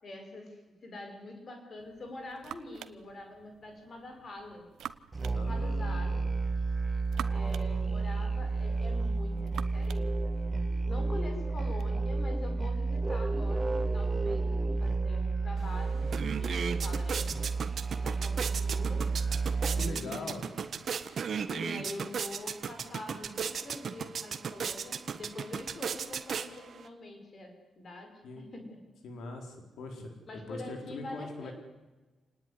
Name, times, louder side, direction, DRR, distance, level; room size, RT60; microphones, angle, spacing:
voice 1, 0.0-4.7 5.5-6.2 7.3-17.6 18.0-19.1 19.7-20.5 21.5-28.8 30.3-31.5, left 2 dB, 35° left, 5 dB, 5.3 m, -45 dB
sound 1, 1.8-11.9, right 10 dB, 80° right, 1.1 m, -48 dB
Musical instrument, 5.1-20.1, right 3 dB, 15° right, 0.9 m, -31 dB
voice 2, 5.3-6.2 19.7-20.5 28.2-28.5 29.0-31.5, left 2 dB, 75° left, 4 dB, 4.4 m, -42 dB
sound 2, 15.6-15.7 16.0-26.9, right 6 dB, 45° right, 1.5 m, -36 dB
28.5 x 19.5 x 9.8 m, 1.2 s
wide cardioid pair, 180°, 0 cm